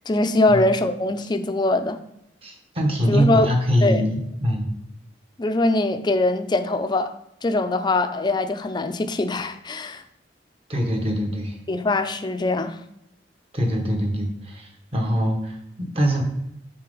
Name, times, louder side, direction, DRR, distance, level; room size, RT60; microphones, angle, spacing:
voice 1, 0.1-2.0 3.1-3.5 3.8-4.1 5.4-7.1 7.4-10.0 11.7-12.8, left 2 dB, 25° left, 0.4 m, -22 dB
voice 2, 2.4-4.7 10.7-11.6 13.5-16.2, equal, 35° right, 1.2 m, -23 dB
5.7 x 5.1 x 3.9 m
head